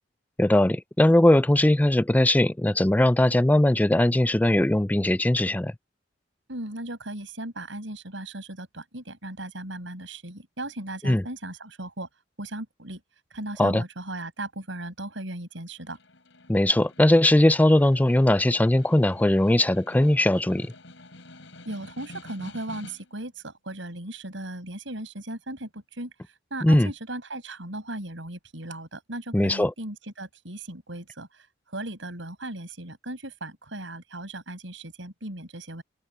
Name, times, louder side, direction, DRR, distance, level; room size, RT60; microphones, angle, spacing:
voice 1, 0.4-5.7 11.0-11.2 13.6-13.8 16.5-20.7 26.6-26.9 29.3-29.7, left 1 dB, 10° left, 0.4 m, -20 dB
voice 2, 6.5-12.1 12.4-13.0 13.3-16.0 21.6-26.1 26.5-35.8, right 1 dB, 75° right, 6.2 m, -37 dB
Snare drum, 15.8-23.3, left 2 dB, 70° left, 5.1 m, -48 dB
open air
head